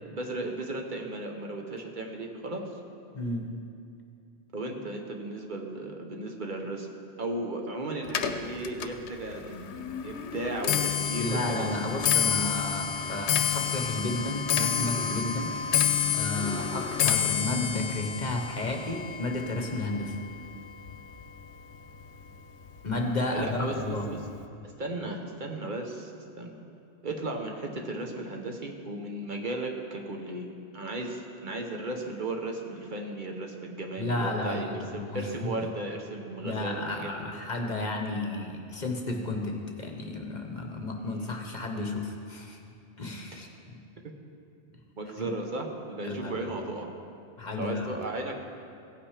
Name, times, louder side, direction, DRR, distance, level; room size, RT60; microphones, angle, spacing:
voice 1, 0.1-2.7 4.5-6.9 7.2-9.6 10.0-11.9 16.6-16.8 23.3-24.2 24.8-26.1 26.4-26.6 27.0-30.5 30.7-37.1 41.0-41.4 45.0-46.9 47.5-48.4, right 2 dB, 50° right, 2 dB, 1.1 m, -35 dB
voice 2, 3.1-3.5 11.2-15.6 16.1-20.2 22.8-24.1 34.0-35.5 36.4-42.6 43.0-43.8 45.2-45.3 46.0-46.5 47.4-47.9, left 2 dB, 45° left, 2 dB, 1.0 m, -32 dB
Clock, 8.1-21.4 21.7-22.2 23.0-23.1 23.4-23.8 24.1-24.2, left 8 dB, 85° left, 0.9 m, -29 dB
16.5 x 5.9 x 4.9 m, 2.6 s
omnidirectional pair, 1.1 m